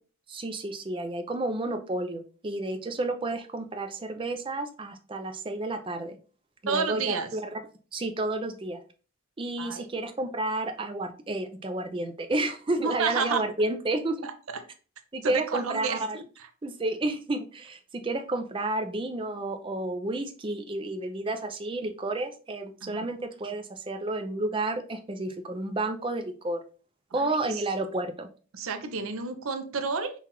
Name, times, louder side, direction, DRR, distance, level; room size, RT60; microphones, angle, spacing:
voice 1, 0.3-6.2 6.6-7.6 7.9-8.8 9.4-14.3 15.1-16.2 16.6-26.6 27.1-28.3, right 2 dB, 25° right, 7 dB, 0.4 m, -31 dB
voice 2, 6.7-7.3 9.6-9.8 12.8-13.4 14.2-14.3 15.2-16.0 22.8-23.1 27.2-27.6 28.5-30.1, right 5 dB, 70° right, 8 dB, 0.6 m, -30 dB
5.6 x 2.4 x 2.9 m, 0.39 s
head